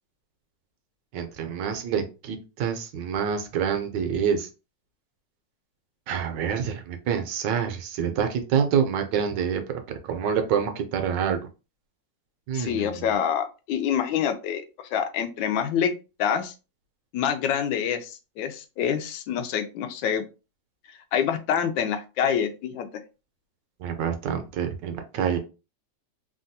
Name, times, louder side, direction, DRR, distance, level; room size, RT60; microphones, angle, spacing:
voice 1, 1.1-4.5 6.1-9.6 10.1-11.4 12.5-13.1 23.8-25.4, right 7 dB, 75° right, 6 dB, 1.3 m, -27 dB
voice 2, 12.5-14.6 14.9-15.9 16.2-16.5 17.1-20.2 21.1-22.9, left 8 dB, 85° left, 7 dB, 1.3 m, -26 dB
3.4 x 2.3 x 2.6 m, 0.31 s
omnidirectional pair, 2.0 m